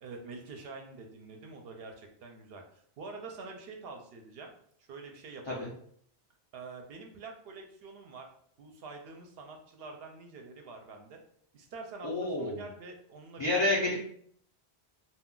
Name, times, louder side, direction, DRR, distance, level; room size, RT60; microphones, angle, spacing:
voice 1, 0.0-4.5 4.8-5.7 6.5-8.3 8.6-11.2 11.5-13.9, right 3 dB, 70° right, 3 dB, 0.8 m, -46 dB
voice 2, 12.0-12.6 13.4-14.0, left 2 dB, 40° left, -5 dB, 0.4 m, -29 dB
2.3 x 2.2 x 3.6 m, 0.64 s
omnidirectional pair, 1.1 m